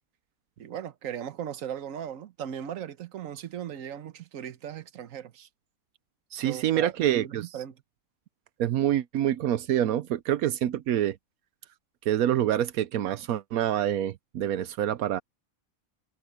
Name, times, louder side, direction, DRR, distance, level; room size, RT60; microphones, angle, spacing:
voice 1, 0.6-5.5 6.3-7.8, right 9 dB, 70° right, 1.3 m, -38 dB
voice 2, 6.3-7.5 8.6-11.2 12.1-15.2, right 11 dB, 85° right, 1.2 m, -26 dB
omnidirectional pair, 1.5 m